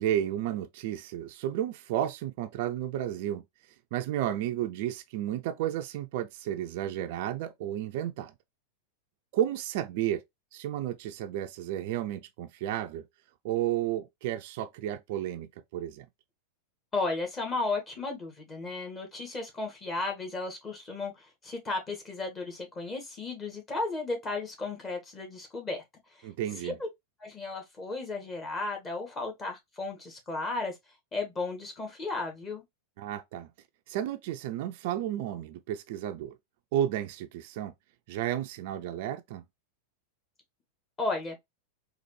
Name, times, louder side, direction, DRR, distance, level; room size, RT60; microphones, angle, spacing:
voice 1, 0.0-3.4 3.9-8.3 9.3-10.2 10.5-13.1 13.4-16.1 26.2-26.8 33.0-33.5 33.9-36.4 36.7-37.7 38.1-39.4, right 11 dB, 50° right, 0.3 m, -32 dB
voice 2, 16.9-21.1 21.4-25.8 26.6-26.7 27.2-30.7 31.1-32.6 41.0-41.4, left 3 dB, 20° left, 1.4 m, -34 dB
4.0 x 2.5 x 3.0 m
figure-of-eight pair, 90°, 0 cm